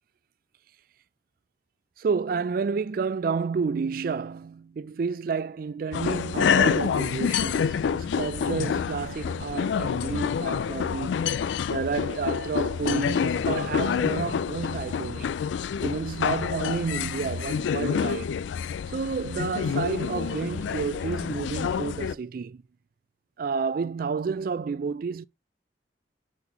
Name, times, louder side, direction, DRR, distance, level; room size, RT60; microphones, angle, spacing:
voice 1, 2.0-11.3 11.7-15.3 15.8-18.3 18.9-22.6 23.4-25.3, right 5 dB, 50° right, 0.3 m, -30 dB
sound 1, 5.9-22.2, left 7 dB, 75° left, 0.3 m, -27 dB
4.3 x 4.2 x 5.4 m
head